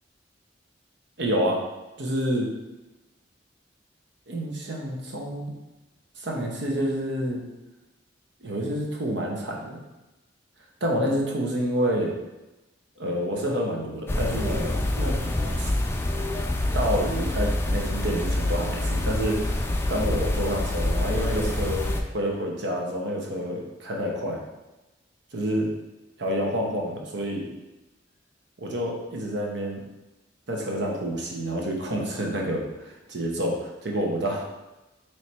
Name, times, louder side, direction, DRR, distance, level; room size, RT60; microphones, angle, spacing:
voice 1, 1.2-1.6 2.0-2.5 4.3-5.5 6.2-7.4 8.4-9.8 10.8-12.1 13.0-15.3 15.6-15.7 16.7-24.4 25.3-25.7 26.2-27.5 28.6-29.8 30.5-34.5, equal, 65° right, 0 dB, 0.8 m, -28 dB
sound 1, 14.1-22.0, left 1 dB, 15° left, 0.3 m, -26 dB
3.2 x 3.0 x 4.3 m, 1.0 s
head